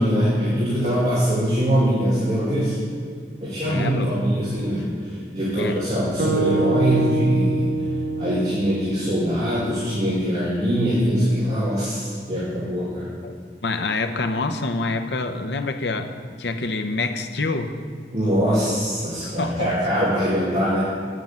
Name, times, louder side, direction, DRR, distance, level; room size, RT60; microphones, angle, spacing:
voice 1, 0.0-2.8 3.4-7.8 8.2-13.1 18.1-20.9, equal, 40° right, -8 dB, 2.6 m, -22 dB
voice 2, 3.6-4.1 5.6-5.8 13.2-17.7 19.2-19.7, left 3 dB, 80° left, 7 dB, 0.8 m, -27 dB
sound 1, 6.2-10.4, right 2 dB, 55° right, 1.4 m, -26 dB
9.3 x 7.9 x 7.4 m, 2.1 s
head